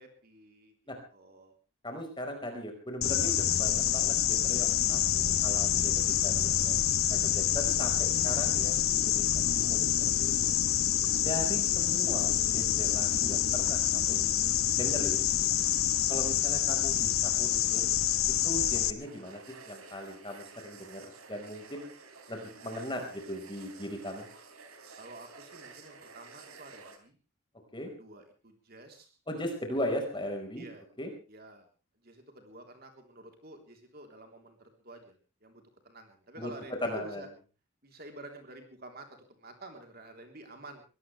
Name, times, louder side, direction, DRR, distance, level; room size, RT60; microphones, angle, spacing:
voice 1, 0.0-0.7 1.1-1.6 11.1-11.3 25.0-27.2 27.9-29.2 30.6-30.8 31.3-31.7 31.9-37.3 37.8-40.8, right 2 dB, 45° right, 4 dB, 3.5 m, -50 dB
voice 2, 1.8-9.2 9.5-10.5 11.2-14.2 14.8-15.3 16.1-18.0 18.4-19.4 19.7-21.0 21.3-21.9 22.3-24.3 27.7-27.9 29.3-30.6 31.0-31.1 36.4-36.5 36.8-37.2, left 1 dB, 20° left, 3 dB, 4.7 m, -38 dB
sound 1, 3.0-18.9, left 11 dB, 80° left, 1.1 m, -27 dB
sound 2, 19.0-27.0, right 4 dB, 90° right, 3.5 m, -51 dB
23.0 x 18.0 x 3.4 m, 0.35 s
head